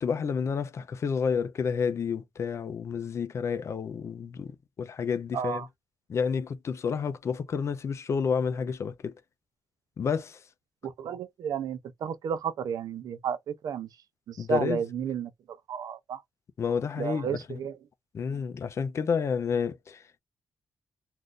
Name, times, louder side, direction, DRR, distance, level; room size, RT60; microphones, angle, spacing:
voice 1, 0.0-4.5 4.8-5.6 6.1-9.1 10.0-10.4 14.4-14.8 16.6-17.6 18.1-20.0, left 6 dB, 45° left, 0.5 m, -30 dB
voice 2, 5.3-5.7 10.8-13.9 14.3-16.2 17.0-17.8, right 7 dB, 75° right, 0.5 m, -32 dB
2.5 x 2.4 x 3.6 m
wide cardioid pair, 130°, 6 cm